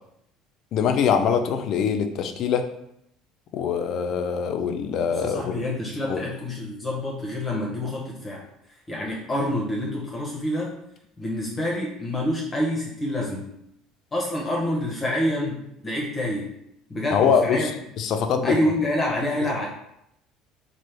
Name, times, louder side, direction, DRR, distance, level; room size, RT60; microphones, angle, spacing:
voice 1, 0.7-2.7 3.5-5.5 6.1-6.2 17.1-17.7 18.0-18.6, left 7 dB, 60° left, 7 dB, 0.3 m, -23 dB
voice 2, 5.1-8.4 8.9-10.7 11.2-13.5 14.1-16.5 16.9-17.7 18.4-19.7, left 1 dB, 25° left, -2 dB, 0.7 m, -27 dB
3.0 x 2.1 x 3.2 m, 0.78 s
hypercardioid pair, 75°, 0 cm